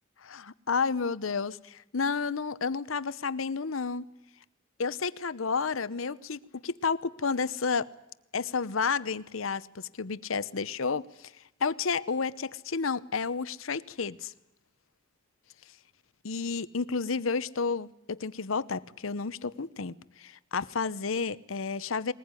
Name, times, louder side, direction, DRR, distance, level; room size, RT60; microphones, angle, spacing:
voice 1, 0.2-4.0 4.8-7.9 8.3-11.3 11.6-14.3 16.2-22.1, left 5 dB, 85° left, 16 dB, 0.9 m, -31 dB
21.0 x 20.0 x 9.8 m, 0.88 s
head